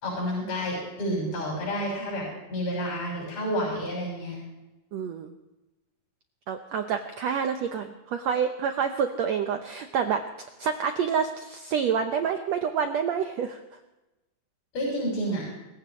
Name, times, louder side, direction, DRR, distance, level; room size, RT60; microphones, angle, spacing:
voice 1, 0.0-4.4 14.7-15.4, equal, 55° left, -5 dB, 7.8 m, -30 dB
voice 2, 4.9-5.3 6.5-10.2 10.6-13.6, right 7 dB, 80° right, 6 dB, 1.5 m, -28 dB
26.5 x 15.5 x 3.2 m, 1.0 s
omnidirectional pair, 4.2 m